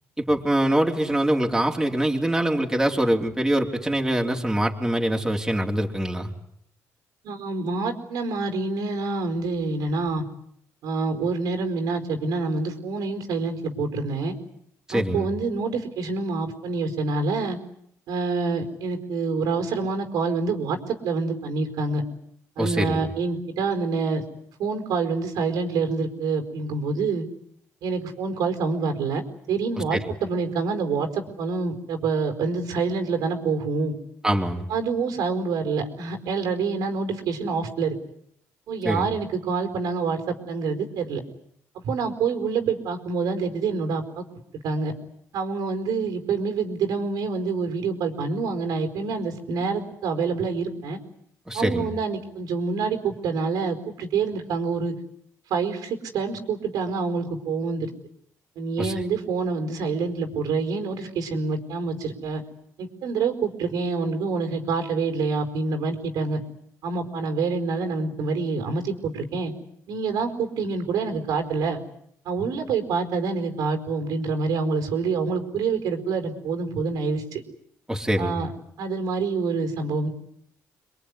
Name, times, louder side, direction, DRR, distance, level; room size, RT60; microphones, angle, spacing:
voice 1, 0.2-6.3 14.9-15.3 22.6-23.0 29.9-30.1 34.2-34.7 38.8-39.1 51.5-51.9 58.8-58.9 77.9-78.4, right 1 dB, 10° right, 1 dB, 3.4 m, -24 dB
voice 2, 7.2-10.2 10.8-14.3 14.9-17.6 18.1-22.0 22.6-24.2 24.6-27.2 27.8-29.2 29.5-33.9 34.7-38.0 38.7-41.2 41.8-44.2 44.6-44.9 45.3-51.0 51.5-54.9 55.5-57.9 58.6-62.4 62.8-66.4 66.8-69.5 69.9-71.8 72.2-77.4 78.2-78.5 78.8-80.1, right 4 dB, 85° right, 6 dB, 4.6 m, -27 dB
27.0 x 22.5 x 9.8 m, 0.70 s
cardioid pair, 95°, 6 cm